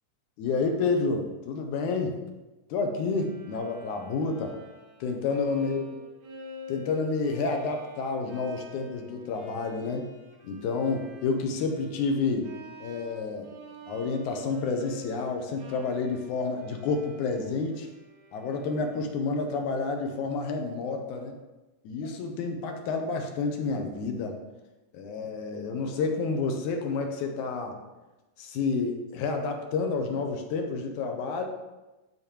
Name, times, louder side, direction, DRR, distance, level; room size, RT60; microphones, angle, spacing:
voice 1, 0.4-2.2 2.7-4.6 5.0-5.9 6.7-10.1 10.4-12.5 12.8-13.5 13.9-17.9 18.3-21.3 21.9-24.4 24.9-27.8 28.4-31.5, left 4 dB, 80° left, 4 dB, 2.1 m, -29 dB
Bowed string instrument, 3.1-19.2, left 1 dB, 65° right, 1.4 m, -49 dB
12.0 x 4.1 x 3.0 m, 1.1 s
omnidirectional pair, 3.6 m